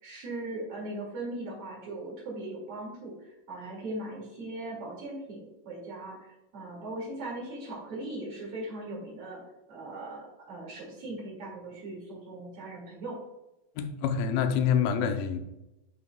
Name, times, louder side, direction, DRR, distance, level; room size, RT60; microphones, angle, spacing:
voice 1, 0.0-9.4 9.7-13.2, right 2 dB, 45° right, -4 dB, 2.6 m, -39 dB
voice 2, 13.8-15.4, left 7 dB, 80° left, 7 dB, 2.2 m, -26 dB
8.2 x 5.6 x 2.2 m, 0.93 s
omnidirectional pair, 4.6 m